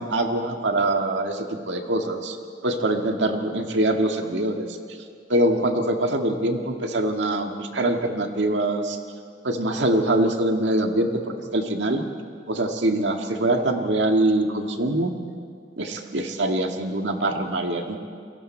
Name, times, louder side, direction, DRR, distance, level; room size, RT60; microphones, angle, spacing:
voice 1, 0.0-2.4 2.6-4.8 5.3-9.0 9.4-12.0 12.5-15.2 15.8-18.0, right 1 dB, 90° right, 3 dB, 1.8 m, -24 dB
29.5 x 22.5 x 4.5 m, 2.2 s
head